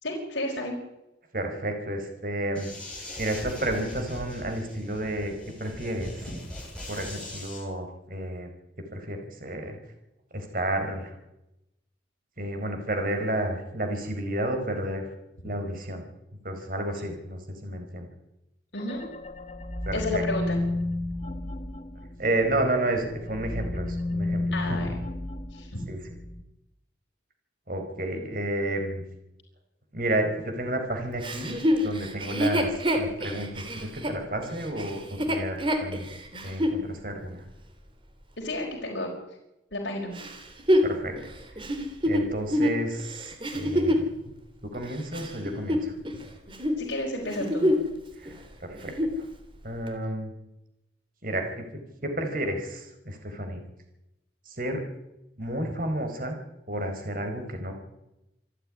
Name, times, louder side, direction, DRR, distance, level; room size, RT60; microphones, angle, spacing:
voice 1, 0.0-0.8 18.7-19.0 19.9-20.6 24.5-24.9 25.5-25.8 38.4-39.1 39.7-40.1 46.8-47.6, left 1 dB, 70° left, -1 dB, 4.9 m, -31 dB
voice 2, 1.3-2.7 3.2-5.3 5.6-6.3 6.9-8.5 8.9-9.8 10.3-11.1 12.4-15.1 15.4-16.0 16.4-18.1 19.9-20.2 22.2-24.8 25.9-26.0 27.7-29.0 29.9-31.6 31.8-36.1 36.4-37.4 40.8-41.6 42.0-44.3 44.6-45.9 48.2-49.3 49.6-50.3 51.2-53.6 54.4-54.8 55.4-56.4 56.7-57.7, right 1 dB, 45° right, 5 dB, 4.6 m, -31 dB
sound 1, 2.5-7.6, left 1 dB, 5° left, 7.0 m, -41 dB
sound 2, 18.8-22.7 23.0-26.4, left 2 dB, 35° left, 1.2 m, -32 dB
Chuckle chortle, 31.2-36.8 37.4-37.5 40.1-44.1 44.7-46.2 46.5-46.8 47.2-47.9 48.2-48.3 48.7-49.2 49.9-50.0, equal, 25° right, 3.1 m, -26 dB
27.0 x 10.0 x 10.0 m, 0.90 s
head